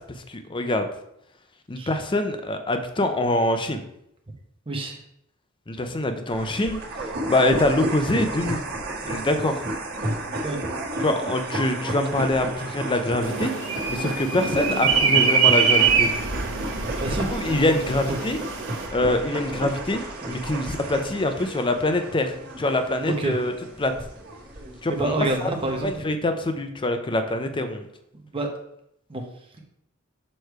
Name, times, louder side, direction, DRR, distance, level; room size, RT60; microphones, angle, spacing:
voice 1, 0.3-0.9 1.7-3.8 5.7-6.8 7.3-8.6 9.0-9.6 11.0-13.5 13.9-16.1 17.3-18.4 18.9-20.0 20.3-23.5 23.8-23.9 24.8-25.5 25.8-27.9, left 1 dB, 25° left, 7 dB, 0.6 m, -24 dB
voice 2, 4.7-5.0 10.4-10.6 17.0-17.3 23.0-23.4 24.9-25.9 28.3-28.5 29.1-29.2, right 2 dB, 25° right, 2 dB, 0.9 m, -27 dB
sound 1, 6.3-26.0, right 1 dB, 50° right, 1.5 m, -33 dB
sound 2, 13.2-18.9, right 6 dB, 75° right, 1.2 m, -23 dB
6.6 x 3.2 x 4.5 m, 0.77 s
head